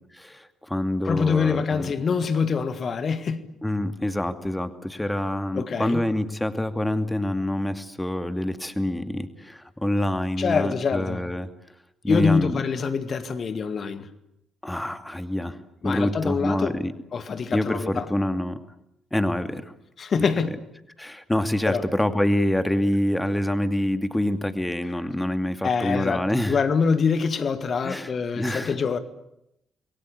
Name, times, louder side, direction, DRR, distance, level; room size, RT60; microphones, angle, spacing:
voice 1, 0.1-1.9 3.6-11.5 12.0-12.5 14.6-16.9 17.5-18.6 19.1-19.7 20.2-20.3 21.0-26.6 27.8-28.8, left 1 dB, 10° left, 2.4 m, -26 dB
voice 2, 1.1-3.4 5.5-6.0 10.4-11.2 12.1-14.1 15.8-16.7 17.1-18.1 20.0-20.5 21.7-21.8 25.6-29.0, left 5 dB, 45° left, 2.1 m, -25 dB
28.0 x 22.5 x 8.4 m
figure-of-eight pair, 45°, 0 cm